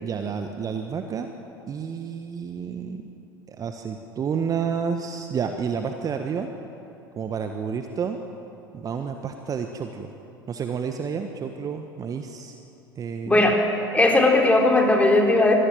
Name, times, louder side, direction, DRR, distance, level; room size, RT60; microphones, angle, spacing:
voice 1, 0.0-1.3 1.7-3.0 3.5-6.5 7.2-8.2 8.7-10.1 10.5-12.6 13.0-13.5, right 6 dB, 30° right, 6 dB, 1.4 m, -30 dB
voice 2, 13.3-13.6 13.9-15.6, left 2 dB, 10° left, 1 dB, 4.2 m, -18 dB
25.0 x 17.5 x 9.2 m, 2.8 s
figure-of-eight pair, 70°, 12 cm